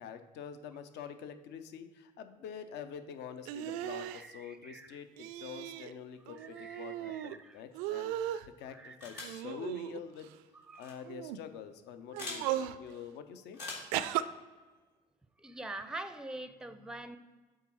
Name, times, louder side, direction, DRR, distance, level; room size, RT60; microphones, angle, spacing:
voice 1, 0.0-10.3 10.8-13.6, left 7 dB, 55° left, 9 dB, 0.7 m, -46 dB
sound 1, 3.5-4.2 5.2-5.9 6.3-7.4 7.7-8.5 9.2-10.3 11.0-11.4 12.1-12.8 13.9-14.2, right 12 dB, 65° right, 0.4 m, -37 dB
voice 2, 4.0-5.0 6.4-7.6 8.7-9.3 10.7-10.9 15.4-17.2, right 2 dB, 5° right, 11 dB, 0.6 m, -45 dB
sound 2, 9.0-9.4 10.7-10.9 12.2-12.4 13.5-14.0, left 3 dB, 80° left, 2.0 m, -42 dB
8.2 x 3.7 x 4.5 m, 1.3 s
figure-of-eight pair, 55°, 21 cm